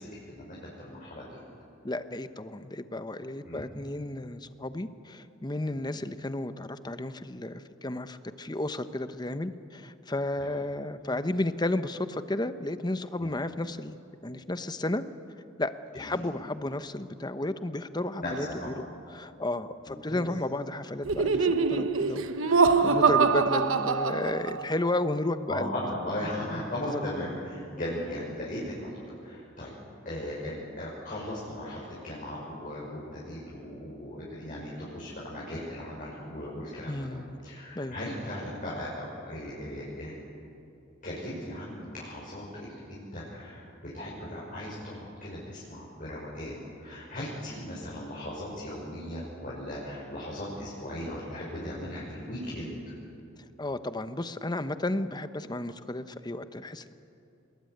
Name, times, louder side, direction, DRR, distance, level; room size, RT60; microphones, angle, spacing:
voice 1, 0.0-1.4 3.4-3.6 5.7-5.8 10.4-10.5 13.2-13.3 16.1-16.2 18.2-18.7 19.9-20.3 23.0-23.2 25.5-28.9 29.2-29.7 30.0-37.0 37.4-40.2 41.0-43.6 43.9-52.8, left 1 dB, 40° left, -6 dB, 5.9 m, -37 dB
voice 2, 1.8-14.0 14.2-15.0 15.6-25.7 26.2-26.3 26.9-27.0 36.8-37.4 37.7-38.0 53.6-56.9, left 2 dB, 20° left, 11 dB, 0.9 m, -33 dB
Laughter, 21.0-24.8, right 4 dB, 90° right, 1.1 m, -24 dB
26.0 x 21.5 x 9.4 m, 2.8 s
head